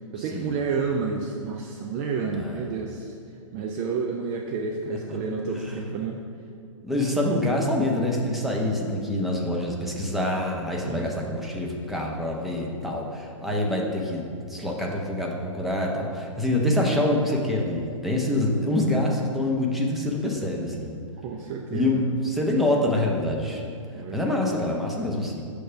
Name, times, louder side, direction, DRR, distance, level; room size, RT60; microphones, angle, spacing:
voice 1, 0.1-3.1 3.5-6.2 10.8-11.4 21.2-22.0 23.9-24.4, right 5 dB, 30° right, 1 dB, 0.4 m, -30 dB
voice 2, 6.8-20.9 21.7-23.6 24.1-25.4, left 1 dB, ahead, -2 dB, 0.7 m, -26 dB
6.3 x 3.4 x 5.7 m, 2.4 s
hypercardioid pair, 120°, 17 cm